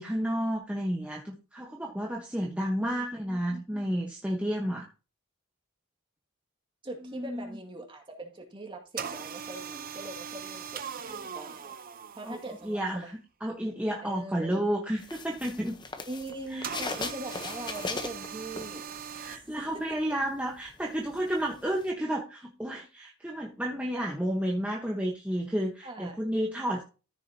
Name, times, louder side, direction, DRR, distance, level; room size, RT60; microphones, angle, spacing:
voice 1, 0.0-4.9 7.0-7.5 12.3-12.4 12.6-13.1 13.4-15.8 16.5-16.7 19.2-26.8, equal, 5° right, -2 dB, 1.1 m, -31 dB
voice 2, 2.8-3.8 6.8-11.8 12.2-13.1 14.0-14.6 16.1-18.9 19.3-19.4 19.9-20.0 25.8-26.2, right 1 dB, 25° right, 2 dB, 2.0 m, -42 dB
sound 1, 9.0-12.9 16.6-19.4, right 7 dB, 45° right, 0.7 m, -40 dB
sound 2, 15.0-19.2 19.5-21.9, left 3 dB, 20° left, 0.8 m, -39 dB
14.0 x 6.5 x 2.8 m, 0.32 s
head